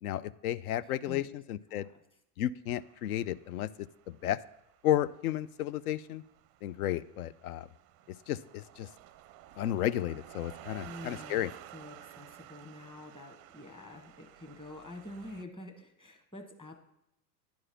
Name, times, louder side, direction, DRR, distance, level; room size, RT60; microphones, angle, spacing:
voice 1, 0.0-1.9 2.4-3.7 4.1-4.4 4.8-6.2 6.6-7.7 8.3-8.9 9.6-11.5, left 12 dB, 70° left, 18 dB, 0.5 m, -33 dB
voice 2, 1.1-1.4 1.7-1.9 10.8-11.4 11.7-16.8, left 2 dB, 10° left, 3 dB, 1.3 m, -47 dB
sound 1, 2.7-15.4, right 13 dB, 35° right, 0.4 m, -53 dB
10.5 x 4.8 x 5.7 m, 0.80 s
hypercardioid pair, 85°, 46 cm